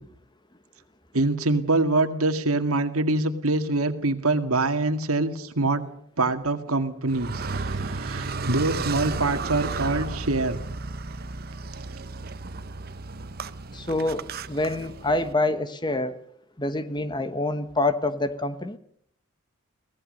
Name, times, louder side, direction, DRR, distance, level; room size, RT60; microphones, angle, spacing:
voice 1, 1.1-5.8 6.2-10.6, right 2 dB, 80° right, 8 dB, 2.0 m, -25 dB
Car, 7.1-15.3, right 3 dB, 45° right, 0.9 m, -33 dB
voice 2, 13.7-16.2 16.6-18.8, left 2 dB, 20° left, 11 dB, 1.1 m, -26 dB
23.0 x 18.0 x 6.6 m, 0.67 s
head